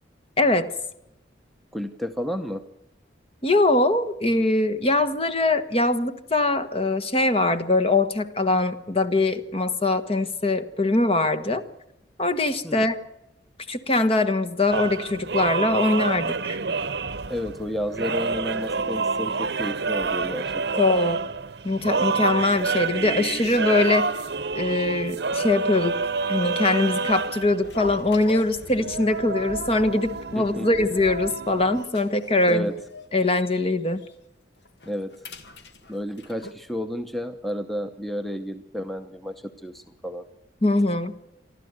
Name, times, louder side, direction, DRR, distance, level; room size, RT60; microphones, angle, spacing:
voice 1, 0.4-0.7 3.4-11.6 12.2-13.0 13.7-16.6 20.8-21.2 21.6-24.2 24.5-26.0 26.3-32.7 33.1-34.0 40.6-41.1, left 2 dB, 30° left, 10 dB, 1.3 m, -22 dB
voice 2, 1.7-2.6 12.6-12.9 17.3-20.8 30.4-30.7 32.5-32.7 34.9-35.1 35.9-40.2, equal, ahead, 7 dB, 0.8 m, -31 dB
sound 1, 14.7-31.8, right 4 dB, 60° right, 0.9 m, -28 dB
sound 2, 27.6-29.2 29.5-29.8 30.0-30.1 30.7-31.2 31.6-33.6 34.0-34.1 34.6-36.5, left 2 dB, 70° left, 2.0 m, -41 dB
27.5 x 12.0 x 8.0 m, 0.88 s
head